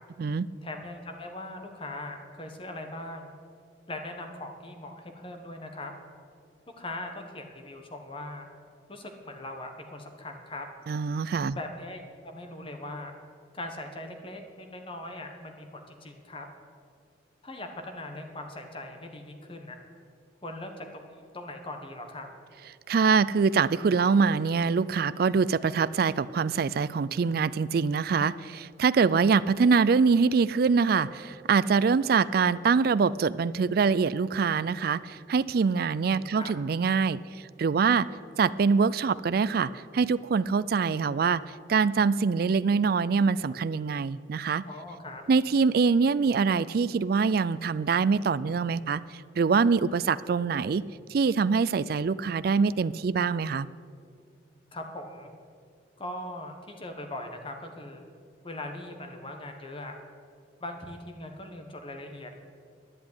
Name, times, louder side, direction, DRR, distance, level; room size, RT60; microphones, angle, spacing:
voice 1, 0.6-3.3 3.9-5.9 6.8-8.5 8.9-10.7 11.5-13.1 13.5-16.5 17.4-19.8 20.4-21.0 21.3-22.3 36.0-36.5 44.6-45.2 54.7-55.3 56.0-58.0 58.4-60.0 60.6-62.4, left 1 dB, 30° left, 4 dB, 1.4 m, -40 dB
voice 2, 10.9-11.6 22.9-37.2 37.6-38.1 38.4-41.4 41.7-44.6 45.3-49.0 49.4-50.8 51.1-53.7, right 5 dB, 55° right, 17 dB, 0.4 m, -24 dB
11.0 x 8.2 x 9.5 m, 2.2 s
head